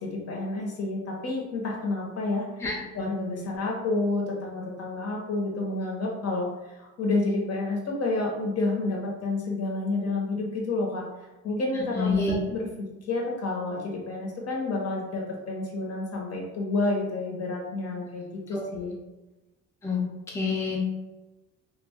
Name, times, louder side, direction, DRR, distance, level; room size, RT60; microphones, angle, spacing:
voice 1, 0.0-2.5 2.9-11.1 11.4-19.0, left 2 dB, 55° left, -1 dB, 0.9 m, -29 dB
voice 2, 11.9-12.4 18.5-18.6 19.8-20.0 20.3-20.8, left 4 dB, 10° left, -3 dB, 0.5 m, -27 dB
2.2 x 2.1 x 3.5 m, 1.1 s
cardioid pair, 90°, 30 cm